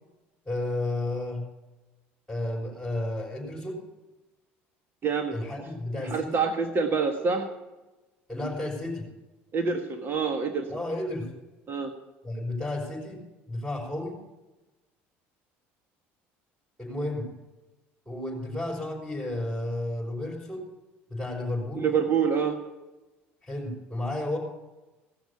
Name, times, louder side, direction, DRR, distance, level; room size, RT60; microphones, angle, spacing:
voice 1, 0.4-1.4 2.3-3.8 5.3-6.4 8.3-9.1 10.7-11.3 12.2-13.2 13.5-14.2 16.8-17.3 18.0-20.7 21.1-21.9 23.4-24.4, left 1 dB, 5° left, -6 dB, 5.0 m, -32 dB
voice 2, 5.0-5.3 6.0-7.5 9.5-10.7 11.7-11.9 21.8-22.6, right 5 dB, 40° right, 5 dB, 1.6 m, -26 dB
17.5 x 6.2 x 8.4 m, 1.1 s
supercardioid pair, 80°, 6 cm